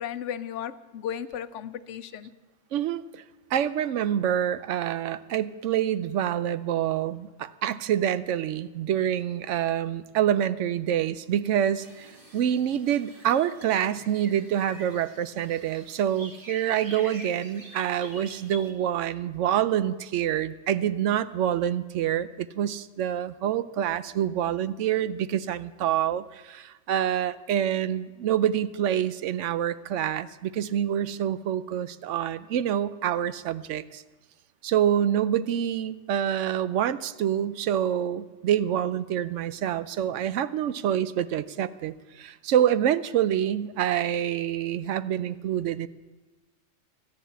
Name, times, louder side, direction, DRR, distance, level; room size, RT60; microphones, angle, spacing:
voice 1, 0.0-2.3, left 9 dB, 75° left, 13 dB, 0.9 m, -35 dB
voice 2, 2.7-3.2 3.5-12.1 12.3-34.0 34.6-45.9, right 10 dB, 75° right, 14 dB, 0.9 m, -26 dB
sound 1, 11.7-18.7, equal, 45° right, 2.2 m, -47 dB
13.5 x 10.0 x 6.9 m, 1.2 s
omnidirectional pair, 1.3 m